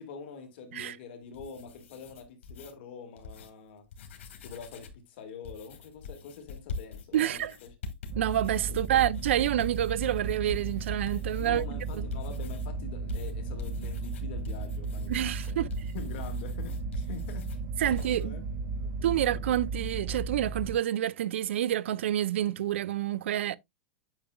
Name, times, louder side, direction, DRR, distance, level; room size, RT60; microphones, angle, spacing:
voice 1, 0.0-3.9 4.4-7.7 8.7-9.1 11.4-18.4 18.8-19.5, left 5 dB, 60° left, 1.9 m, -45 dB
sound 1, 1.2-2.7 3.2-3.5 3.8-5.0 5.4-12.7 13.1-17.6 17.9-18.2, left 4 dB, 85° left, 2.0 m, -44 dB
voice 2, 7.1-7.5 8.2-12.1 15.1-15.7 17.8-18.3 19.0-23.6, right 12 dB, 80° right, 0.5 m, -28 dB
sound 2, 8.1-20.7, right 3 dB, 65° right, 2.1 m, -35 dB
8.8 x 6.1 x 2.3 m
supercardioid pair, 155°, 6 cm